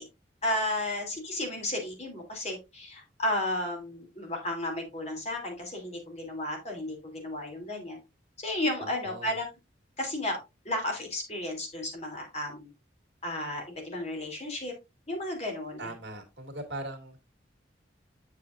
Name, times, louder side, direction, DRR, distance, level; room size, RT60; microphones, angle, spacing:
voice 1, 0.4-8.0 8.4-9.5 10.0-10.4 10.6-12.7 13.2-14.7 15.1-15.9, left 1 dB, 35° left, 1 dB, 3.0 m, -33 dB
voice 2, 8.8-9.4 15.8-17.2, right 1 dB, 65° right, 4 dB, 2.2 m, -40 dB
8.3 x 7.1 x 2.5 m, 0.25 s
head